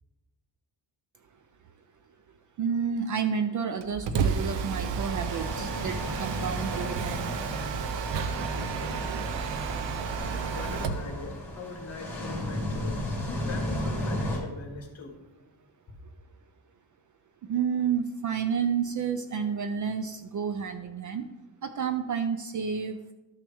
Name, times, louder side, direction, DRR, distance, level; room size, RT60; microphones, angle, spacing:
voice 1, 2.6-7.3 17.4-21.3 21.6-23.0, right 7 dB, 45° right, 9 dB, 0.4 m, -30 dB
Mechanisms, 3.8-11.1, right 6 dB, 70° right, 0.8 m, -31 dB
sound 1, 5.1-14.4, left 1 dB, 5° left, 2.1 m, -34 dB
voice 2, 10.5-13.0 13.5-15.1, left 3 dB, 35° left, 2 dB, 1.8 m, -41 dB
12.5 x 6.1 x 3.4 m, 1.1 s
cardioid pair, 165°, 45 cm